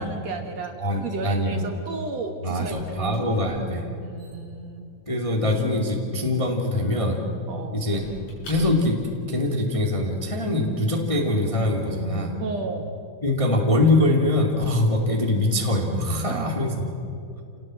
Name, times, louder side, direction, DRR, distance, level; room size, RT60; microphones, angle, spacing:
voice 1, 0.0-3.6 4.0-4.9 7.5-7.8 12.4-12.9 16.2-16.5, right 3 dB, 60° right, 4 dB, 2.3 m, -33 dB
voice 2, 0.8-1.6 2.4-3.9 5.1-7.2 7.7-8.0 8.4-9.0 9.3-12.4 13.2-16.9, left 1 dB, 15° left, 0 dB, 1.6 m, -23 dB
Squeak / Wood, 2.0-9.1, left 1 dB, 85° left, 6.8 m, -46 dB
27.5 x 18.5 x 7.6 m, 2.5 s
omnidirectional pair, 4.0 m